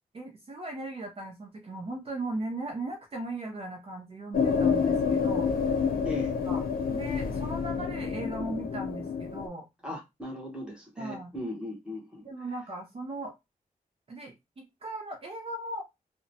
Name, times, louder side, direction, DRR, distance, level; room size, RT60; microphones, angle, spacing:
voice 1, 0.1-5.5 6.5-6.6 6.9-9.7 11.0-11.3 12.2-13.3 14.1-15.8, right 2 dB, 40° right, 0.5 m, -38 dB
sound 1, 4.3-9.5, left 6 dB, 85° left, 0.4 m, -28 dB
voice 2, 9.8-12.2, left 1 dB, 5° right, 0.9 m, -38 dB
2.9 x 2.1 x 2.6 m
wide cardioid pair, 150°, 15 cm